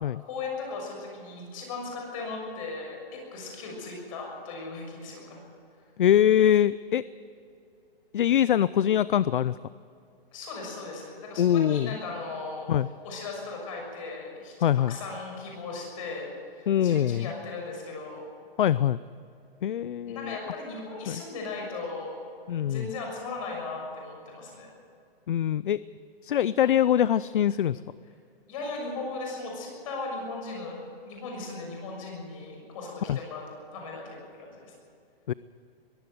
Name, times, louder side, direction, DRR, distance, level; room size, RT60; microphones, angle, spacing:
voice 1, 0.3-5.4 10.3-12.7 13.0-14.5 14.9-18.2 20.0-22.2 22.6-24.7 28.5-33.4 33.7-34.7, left 3 dB, 35° left, 0 dB, 6.6 m, -37 dB
voice 2, 6.0-7.0 8.1-9.6 11.4-12.0 12.7-12.9 14.6-15.0 16.7-17.3 18.6-19.0 19.6-20.4 21.1-21.2 22.5-22.9 25.3-25.8 26.2-27.8 33.1-33.2 35.3-35.4, left 10 dB, 55° left, 18 dB, 0.5 m, -23 dB
22.5 x 15.0 x 7.9 m, 2.6 s
hypercardioid pair, 170°, 31 cm